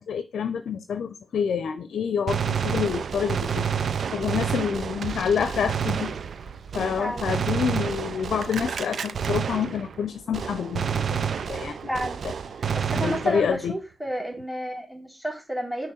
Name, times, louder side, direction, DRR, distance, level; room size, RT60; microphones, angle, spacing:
voice 1, 0.1-3.7 4.1-6.1 6.7-11.8 12.2-12.3 12.9-13.7, left 7 dB, 70° left, 0.6 m, -27 dB
Gunshot gunfire, 2.3-10.1 10.3-13.7, right 7 dB, 60° right, 0.5 m, -29 dB
voice 2, 7.0-7.3 11.9-12.2 12.8-15.9, equal, ahead, 3.4 m, -31 dB
6.0 x 3.1 x 5.8 m
supercardioid pair, 60°, 0 cm